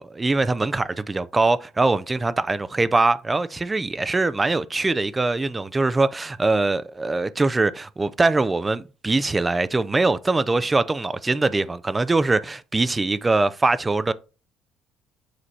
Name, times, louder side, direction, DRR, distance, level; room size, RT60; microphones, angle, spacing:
voice 1, 0.0-14.1, right 3 dB, 15° right, 0.4 m, -22 dB
7.6 x 3.2 x 4.1 m
cardioid pair, 130°, 0 cm